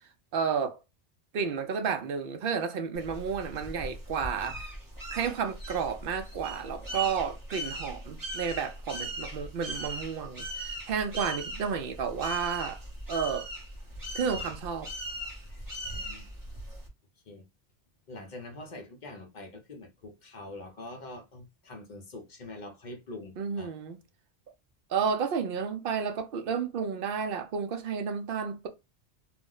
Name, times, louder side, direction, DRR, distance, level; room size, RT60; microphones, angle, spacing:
voice 1, 0.3-0.8 1.3-4.7 5.1-12.8 13.1-13.5 14.1-14.9 23.4-24.0 24.9-28.7, right 6 dB, 60° right, 0.7 m, -31 dB
sound 1, 2.9-16.9, right 1 dB, 20° right, 0.8 m, -39 dB
voice 2, 15.5-16.3 17.3-17.4 18.1-23.7, left 2 dB, 50° left, 0.7 m, -45 dB
2.4 x 2.1 x 3.7 m
omnidirectional pair, 1.1 m